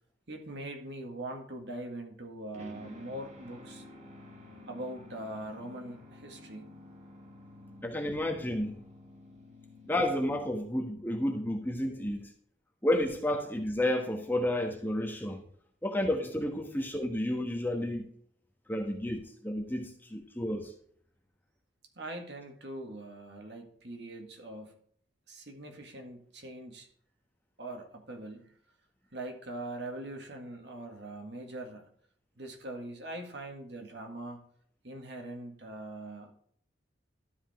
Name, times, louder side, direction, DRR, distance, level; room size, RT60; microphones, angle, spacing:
voice 1, 0.3-3.9 4.7-6.7 22.0-24.8 25.3-26.9 27.6-28.6 29.1-31.9 32.4-34.4 34.8-36.3, right 1 dB, 65° right, 1.9 m, -42 dB
sound 1, 2.5-10.8, left 1 dB, 35° right, 1.7 m, -51 dB
voice 2, 7.8-8.7 9.8-12.3 12.8-15.4 15.8-18.1 18.7-20.7, left 1 dB, 10° left, 1.2 m, -31 dB
12.5 x 5.1 x 3.6 m
head